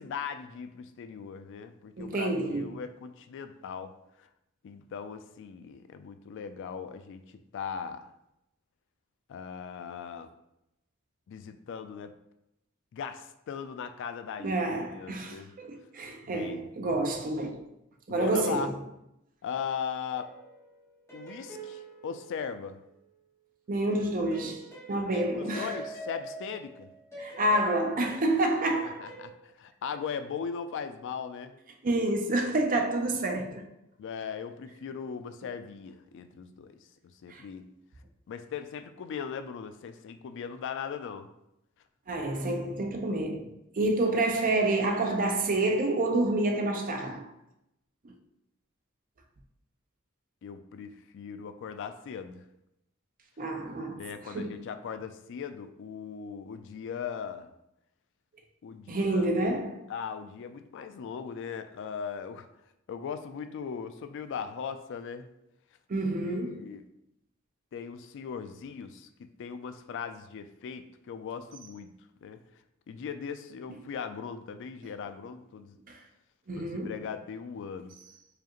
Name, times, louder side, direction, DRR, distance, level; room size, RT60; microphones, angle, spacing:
voice 1, 0.0-3.9 4.2-4.3 4.6-7.2 7.5-8.0 9.3-10.3 11.3-12.1 12.9-14.6 14.9-15.5 16.3-16.6 18.1-18.7 19.4-20.3 21.1-22.8 25.1-26.9 29.0-31.5 34.0-36.8 37.2-37.6 38.3-41.3 50.4-52.4 54.0-57.5 58.6-59.3 59.9-62.5 62.9-65.3 66.2-66.8 67.7-71.9 72.2-72.4 72.9-75.8 76.6-77.9, left 6 dB, 60° left, 0.3 m, -39 dB
voice 2, 2.0-2.7 14.4-17.7 18.1-18.7 23.7-24.6 24.9-25.8 27.2-29.0 31.8-33.7 37.3-37.4 42.1-47.3 48.0-48.1 53.4-54.6 58.9-59.8 65.9-66.7 75.9-76.0 76.5-77.0, right 2 dB, 40° right, 0.5 m, -28 dB
sound 1, 20.1-23.0 23.9-29.3, right 2 dB, 15° left, 1.2 m, -46 dB
4.8 x 2.4 x 2.9 m
head